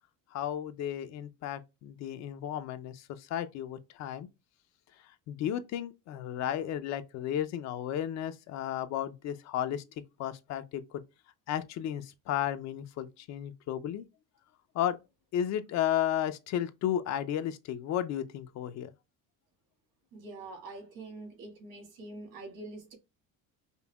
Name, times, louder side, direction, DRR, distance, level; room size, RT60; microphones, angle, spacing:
voice 1, 0.3-4.3 5.3-9.8 10.2-11.0 11.5-14.1 14.7-15.0 15.3-18.9, left 10 dB, 55° left, 0.5 m, -33 dB
voice 2, 20.1-22.9, right 2 dB, 70° right, 2.3 m, -45 dB
5.3 x 2.2 x 2.2 m
cardioid pair, 140°, 33 cm